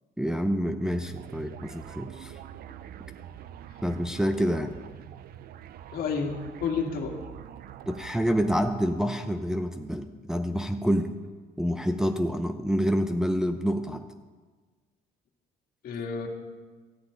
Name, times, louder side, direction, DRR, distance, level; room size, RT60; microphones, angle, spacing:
voice 1, 0.2-2.4 3.8-4.7 7.9-11.1 11.6-14.0, equal, 5° right, 5 dB, 0.7 m, -27 dB
sound 1, 0.8-9.1, right 10 dB, 60° right, 0.5 m, -45 dB
voice 2, 5.9-7.2 15.8-16.3, left 5 dB, 60° left, 3 dB, 2.0 m, -30 dB
13.5 x 6.0 x 9.1 m, 1.4 s
cardioid pair, 110°, 17 cm